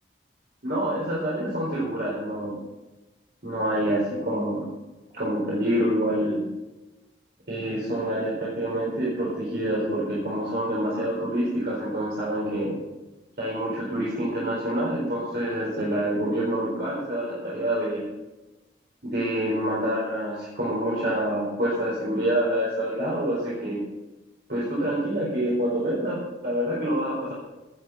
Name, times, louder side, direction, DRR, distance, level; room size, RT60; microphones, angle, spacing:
voice 1, 0.6-2.5 3.4-4.6 5.1-6.4 7.5-12.8 13.4-18.0 19.0-23.8 24.5-27.3, right 1 dB, 65° right, -7 dB, 4.5 m, -27 dB
18.0 x 8.1 x 5.6 m, 1.1 s
head